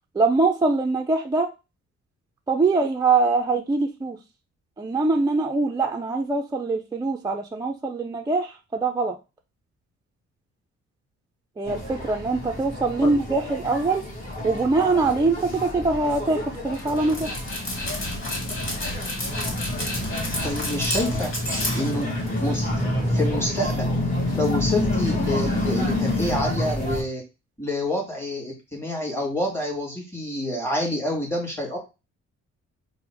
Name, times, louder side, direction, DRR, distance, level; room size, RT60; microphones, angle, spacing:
voice 1, 0.1-1.5 2.5-4.2 4.8-9.2 11.6-14.0 14.4-17.4, right 3 dB, 15° right, 4 dB, 0.3 m, -23 dB
sound 1, 11.7-27.0, left 1 dB, 25° left, 1.5 m, -28 dB
Dog, 16.7-22.5, left 1 dB, 45° left, 1.8 m, -30 dB
voice 2, 20.4-21.3 21.7-23.9 24.4-27.2 27.6-31.8, left 1 dB, 10° left, -1 dB, 1.7 m, -28 dB
3.9 x 2.1 x 4.5 m, 0.27 s
cardioid pair, 135°, 29 cm